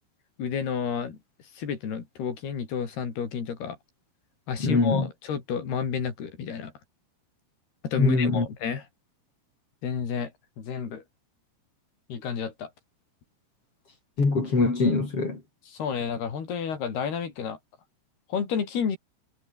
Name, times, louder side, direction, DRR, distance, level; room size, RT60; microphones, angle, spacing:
voice 1, 0.4-1.2 1.5-3.8 4.5-6.7 7.8-8.9 9.8-10.3 10.6-11.0 12.1-12.7 15.7-17.6 18.3-19.0, left 7 dB, 55° left, 5.9 m, -30 dB
voice 2, 4.6-5.1 8.0-8.5 14.2-15.4, left 3 dB, 30° left, 5.6 m, -23 dB
omnidirectional pair, 5.5 m